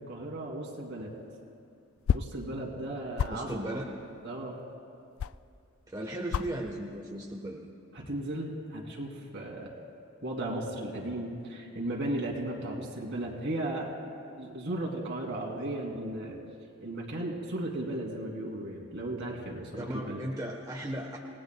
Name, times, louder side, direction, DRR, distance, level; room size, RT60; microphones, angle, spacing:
voice 1, 0.1-1.1 2.1-3.8 4.2-4.6 7.9-9.7 10.2-13.9 14.4-16.4 16.8-20.2, right 1 dB, 60° right, -1 dB, 2.9 m, -35 dB
sound 1, 1.1-5.9 6.2-6.6 6.9-7.4 7.7-8.2, left 8 dB, 70° left, 0.3 m, -33 dB
voice 2, 3.3-3.9 5.9-7.6 19.8-21.2, right 1 dB, 20° right, -1 dB, 1.2 m, -36 dB
28.0 x 18.5 x 2.3 m, 2.5 s
head